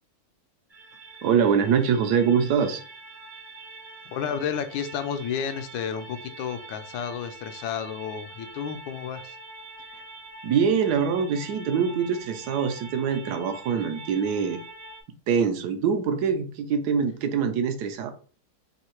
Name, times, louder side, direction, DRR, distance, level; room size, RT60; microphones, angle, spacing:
sound 1, 0.7-15.0, right 2 dB, 35° right, 0.5 m, -44 dB
voice 1, 1.2-2.8 10.4-14.6 15.3-18.1, right 6 dB, 75° right, 7 dB, 0.9 m, -24 dB
voice 2, 4.1-9.4, left 7 dB, 75° left, 9 dB, 1.3 m, -31 dB
3.6 x 2.7 x 4.4 m, 0.40 s
omnidirectional pair, 2.2 m